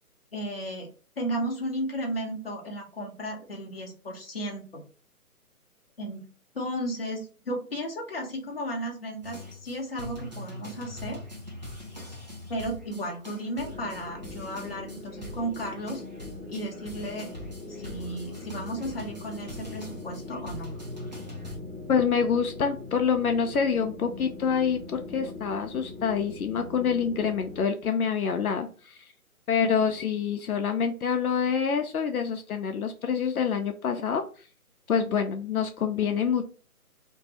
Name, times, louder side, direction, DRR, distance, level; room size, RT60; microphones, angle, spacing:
voice 1, 0.3-0.9 1.2-4.8 6.0-6.3 6.5-11.2 12.5-16.0 16.5-17.3 17.7-20.7 29.6-29.9, equal, 40° left, 0 dB, 0.8 m, -34 dB
sound 1, 9.2-21.6, left 1 dB, 30° right, 0.6 m, -42 dB
sound 2, 13.6-27.6, left 3 dB, 5° left, 1.0 m, -42 dB
voice 2, 21.9-29.0 29.5-34.2 34.9-36.5, left 6 dB, 75° left, 5 dB, 0.6 m, -26 dB
2.6 x 2.3 x 4.1 m, 0.37 s
hypercardioid pair, 175°, 44 cm